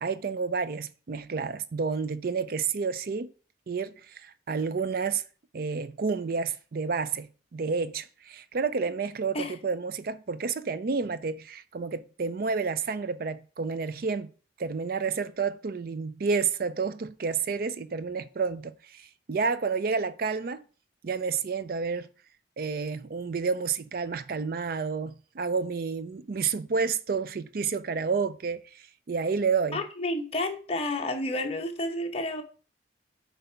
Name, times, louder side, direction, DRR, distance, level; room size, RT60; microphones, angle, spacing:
voice 1, 0.0-3.3 3.7-5.2 5.5-14.3 14.6-20.6 21.0-22.1 22.6-29.8, right 5 dB, 50° right, 0.4 m, -30 dB
voice 2, 29.7-32.4, left 1 dB, 35° left, 1.0 m, -30 dB
7.8 x 3.4 x 5.6 m
head